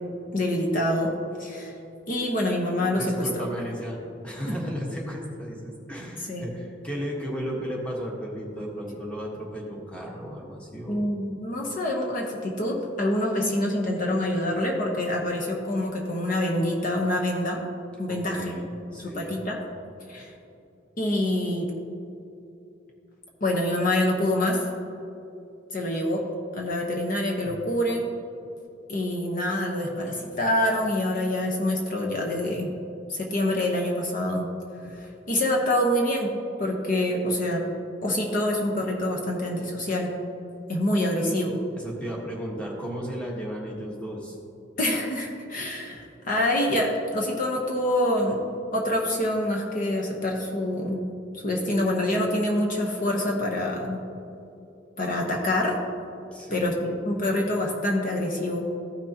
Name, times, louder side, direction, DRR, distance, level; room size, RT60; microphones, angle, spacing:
voice 1, 0.3-1.1 1.4-1.7 2.1-3.3 6.3-6.5 10.9-17.6 18.0-18.5 18.9-19.6 20.1-20.3 21.0-21.7 23.4-24.7 25.7-26.2 26.5-28.1 28.9-32.7 33.1-34.5 34.8-36.3 36.6-37.6 38.0-40.1 40.7-41.6 44.8-48.4 48.7-51.0 51.3-54.0 55.0-55.8 56.5-58.6, left 1 dB, 45° left, 0 dB, 1.0 m, -26 dB
voice 2, 2.9-11.1 18.1-19.4 41.7-44.4 56.3-56.7, equal, 5° left, -3 dB, 1.4 m, -34 dB
14.5 x 6.1 x 2.9 m, 2.7 s
head